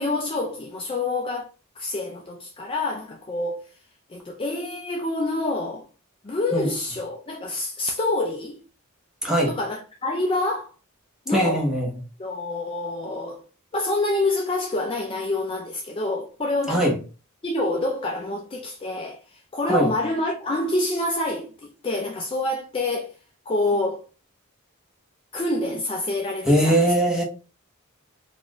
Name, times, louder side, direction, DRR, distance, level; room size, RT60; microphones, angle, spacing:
voice 1, 0.0-1.5 1.8-3.6 4.1-5.9 6.2-8.6 9.5-10.7 11.3-11.7 12.2-13.4 13.7-16.9 17.4-23.1 23.5-24.0 25.3-26.9, left 2 dB, 25° left, 0.4 m, -27 dB
voice 2, 9.2-9.5 11.3-11.9 16.7-17.0 19.6-19.9 26.4-27.2, right 1 dB, 5° right, 1.0 m, -20 dB
4.0 x 2.5 x 3.0 m
head